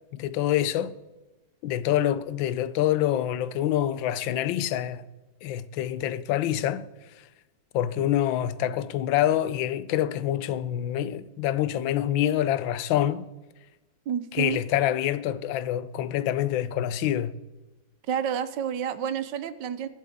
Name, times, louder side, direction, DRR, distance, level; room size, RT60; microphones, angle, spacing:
voice 1, 0.1-0.9 1.6-5.0 5.4-6.8 7.7-13.3 14.3-17.3, left 12 dB, 90° left, 1.4 m, -26 dB
voice 2, 14.1-14.6 18.1-19.9, right 8 dB, 75° right, 1.3 m, -29 dB
22.0 x 7.8 x 3.6 m
omnidirectional pair, 2.0 m